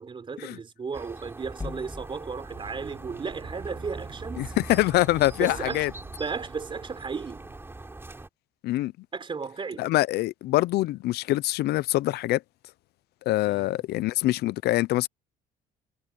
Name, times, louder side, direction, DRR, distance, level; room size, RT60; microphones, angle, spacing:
voice 1, 0.0-4.5 5.4-5.9 6.2-7.4 9.1-9.9 13.4-13.8, right 5 dB, 30° right, 3.7 m, -35 dB
sound 1, 0.9-8.3, right 2 dB, 15° right, 3.5 m, -42 dB
sound 2, 1.6-5.9, left 3 dB, 20° left, 1.9 m, -46 dB
Fire, 2.4-7.7, right 13 dB, 70° right, 5.5 m, -50 dB
voice 2, 4.4-5.9 8.6-8.9 9.8-12.4 13.3-15.1, left 17 dB, 70° left, 0.5 m, -24 dB
cardioid pair, 110°, 17 cm